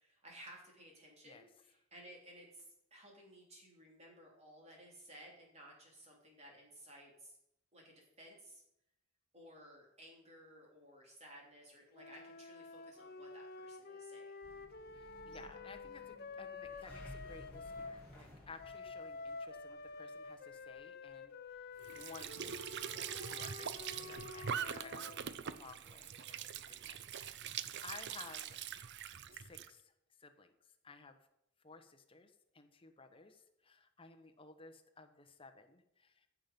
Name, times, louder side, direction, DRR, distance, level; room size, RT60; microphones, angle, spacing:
voice 1, 0.0-7.4 7.7-8.6 9.3-14.3, right 1 dB, 30° right, -1 dB, 3.2 m, -57 dB
sound 1, 11.9-18.0 18.6-25.2, left 4 dB, 45° left, 0.7 m, -49 dB
sound 2, 14.4-23.2, left 1 dB, 5° left, 3.6 m, -57 dB
voice 2, 14.9-28.6 29.3-31.3 31.6-36.3, left 3 dB, 25° left, 6 dB, 1.0 m, -56 dB
Squeak / Sink (filling or washing) / Trickle dribble, 21.8-29.7, right 8 dB, 50° right, 0.5 m, -43 dB
15.0 x 5.9 x 5.3 m, 0.82 s
head